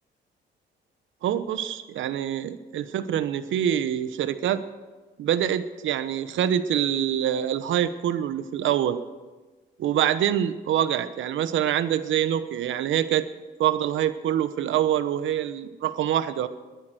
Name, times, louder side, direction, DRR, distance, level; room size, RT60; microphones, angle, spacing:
voice 1, 1.2-4.6 5.2-9.0 9.8-13.3 13.6-16.5, right 10 dB, 75° right, 12 dB, 1.0 m, -25 dB
21.0 x 11.0 x 6.3 m, 1.3 s
cardioid pair, 90°, 20 cm